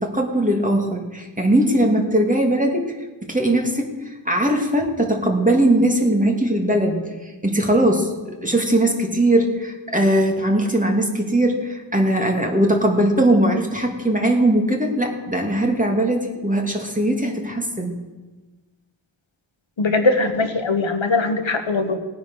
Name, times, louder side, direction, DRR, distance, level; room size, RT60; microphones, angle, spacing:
voice 1, 0.0-2.9 3.3-3.9 4.3-7.0 7.4-8.1 8.4-17.9, right 1 dB, 15° right, 1 dB, 2.6 m, -20 dB
voice 2, 19.8-22.0, left 3 dB, 80° left, 6 dB, 1.4 m, -20 dB
18.0 x 9.4 x 6.4 m, 1.2 s
wide cardioid pair, 50°, 46 cm